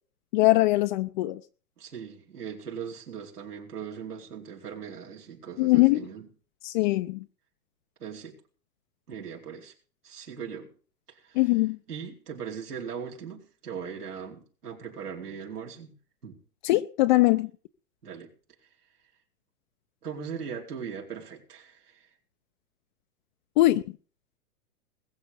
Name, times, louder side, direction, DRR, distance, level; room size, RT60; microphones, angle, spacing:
voice 1, 0.3-1.4 5.6-6.0 6.6-7.2 11.4-11.8 16.6-17.5 23.6-23.8, left 19 dB, 35° left, 0.6 m, -22 dB
voice 2, 1.8-6.3 8.0-8.4 9.1-9.7 10.0-10.7 11.1-11.4 11.9-15.9 16.2-16.4 18.0-18.3 20.0-22.1, right 7 dB, 85° right, 4.5 m, -39 dB
21.0 x 7.5 x 5.3 m
hypercardioid pair, 130°, 45 cm